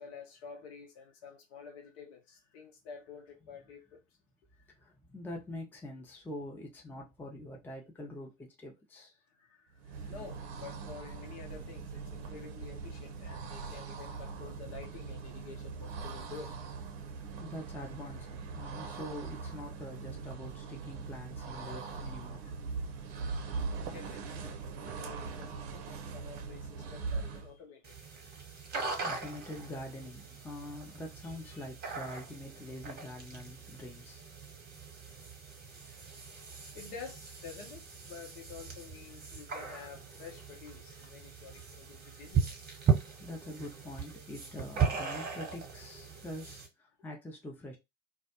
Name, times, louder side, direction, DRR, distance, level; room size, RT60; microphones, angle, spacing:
voice 1, 0.0-4.0 9.3-16.5 23.9-27.9 31.2-31.6 35.9-36.1 36.6-42.9, left 6 dB, 60° left, 0.9 m, -50 dB
voice 2, 4.8-9.1 17.4-22.6 29.0-34.2 43.2-47.8, left 1 dB, 5° left, 0.5 m, -45 dB
sound 1, 9.8-27.6, right 4 dB, 60° right, 0.6 m, -41 dB
sound 2, 27.8-46.7, right 6 dB, 25° right, 0.9 m, -38 dB
2.2 x 2.0 x 2.8 m
figure-of-eight pair, 75°, 36 cm